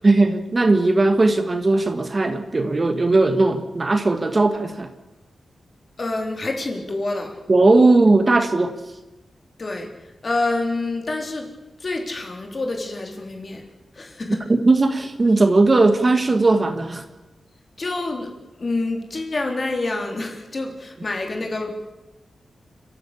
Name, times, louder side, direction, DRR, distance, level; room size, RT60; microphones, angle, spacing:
voice 1, 0.0-4.9 7.5-8.7 14.5-17.0, right 2 dB, 30° right, 8 dB, 1.4 m, -18 dB
voice 2, 6.0-7.4 9.6-9.9 10.2-11.5 11.8-13.6 13.9-14.4 17.8-18.3 18.6-21.7, left 2 dB, 35° left, 2 dB, 3.6 m, -27 dB
30.0 x 13.5 x 8.5 m, 1.1 s
wide cardioid pair, 145°, 0 cm